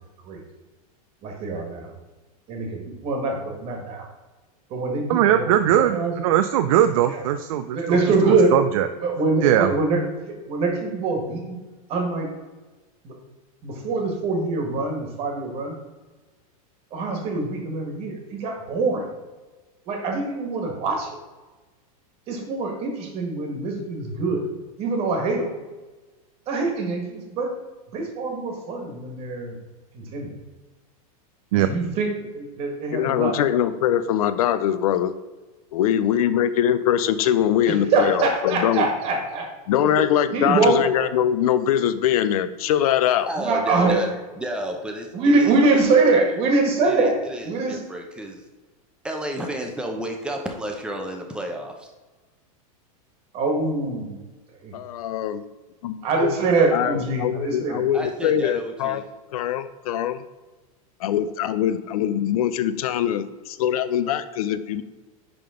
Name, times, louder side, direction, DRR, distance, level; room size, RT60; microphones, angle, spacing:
voice 1, 1.2-1.9 2.5-4.1 4.7-5.5 5.8-6.1 7.7-8.5 9.0-10.0 10.5-11.6 11.9-12.3 13.0-13.1 13.6-15.8 16.9-19.0 19.9-21.1 22.3-24.4 24.8-25.5 26.5-27.5 27.9-29.6 29.9-30.3 31.5-33.4 37.6-39.5 40.3-40.8 43.3-44.0 45.1-47.1 47.4-47.8 53.3-54.1 54.6-54.7 56.0-57.8, right 3 dB, 30° right, 2 dB, 1.6 m, -23 dB
voice 2, 5.1-8.0 8.2-8.9 9.4-9.7 31.5-31.7, right 11 dB, 65° right, 9 dB, 0.4 m, -20 dB
voice 3, 32.9-35.1 35.7-38.9 39.7-43.3 54.7-55.4 55.8-56.3 56.7-59.0 59.3-60.2 61.0-64.8, left 10 dB, 70° left, 13 dB, 0.6 m, -22 dB
voice 4, 43.2-45.8 46.1-46.4 46.8-48.4 49.0-51.9 57.9-59.0, right 1 dB, 5° right, 2 dB, 0.7 m, -32 dB
10.5 x 3.6 x 3.8 m, 1.2 s
supercardioid pair, 160°, 19 cm